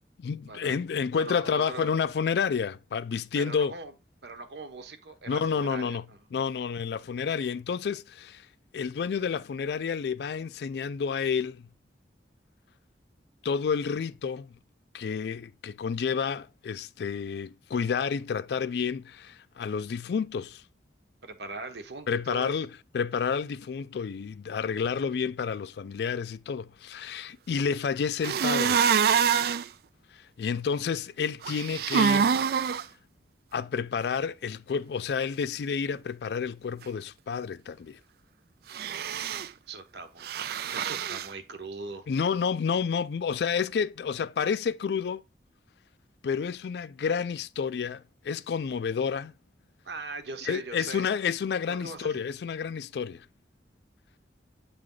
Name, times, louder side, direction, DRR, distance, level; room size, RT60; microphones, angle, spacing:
voice 1, 0.2-3.7 5.3-8.4 8.7-11.7 13.4-14.5 14.9-20.6 22.1-28.9 30.1-32.3 33.5-38.0 40.7-40.9 42.1-45.2 46.2-49.3 50.4-53.2, left 6 dB, 65° left, 0.3 m, -30 dB
voice 2, 1.1-1.9 3.3-3.9 4.2-6.2 21.2-22.6 39.7-42.0 49.8-51.0 51.7-52.2, right 3 dB, 75° right, 1.0 m, -40 dB
sound 1, 28.2-29.6 31.4-32.8 38.7-39.5 40.2-41.3, right 7 dB, 60° right, 0.3 m, -25 dB
8.4 x 3.2 x 3.8 m
head